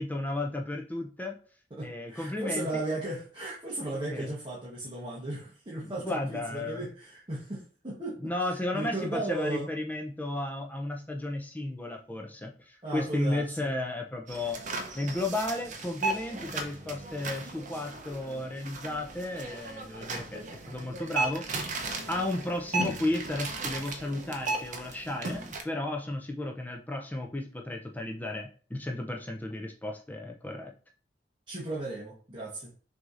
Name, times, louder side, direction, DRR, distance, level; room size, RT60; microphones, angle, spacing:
voice 1, 0.0-1.4 1.8-2.8 4.1-4.3 5.8-6.8 8.2-14.6 14.9-21.8 22.1-30.7, left 1 dB, 10° left, 2 dB, 0.4 m, -34 dB
voice 2, 1.7-9.7 12.8-13.7 31.5-32.7, right 2 dB, 25° right, -5 dB, 1.0 m, -36 dB
sound 1, 14.3-25.6, right 3 dB, 45° right, 0.6 m, -36 dB
6.0 x 2.7 x 2.4 m, 0.41 s
head